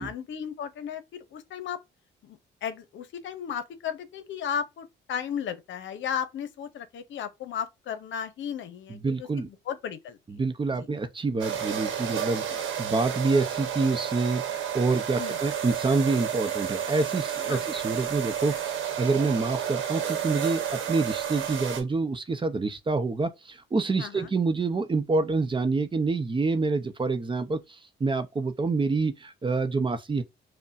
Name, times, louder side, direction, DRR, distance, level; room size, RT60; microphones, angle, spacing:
voice 1, 0.0-1.8 2.2-10.2 10.8-10.9 15.2-15.4 17.5-17.6 24.0-24.3, left 8 dB, 70° left, 0.8 m, -35 dB
voice 2, 8.9-9.5 10.3-30.2, right 3 dB, 25° right, 0.7 m, -27 dB
sound 1, 11.4-21.8, right 9 dB, 80° right, 1.1 m, -31 dB
5.3 x 2.2 x 2.6 m
cardioid pair, 90°, 20 cm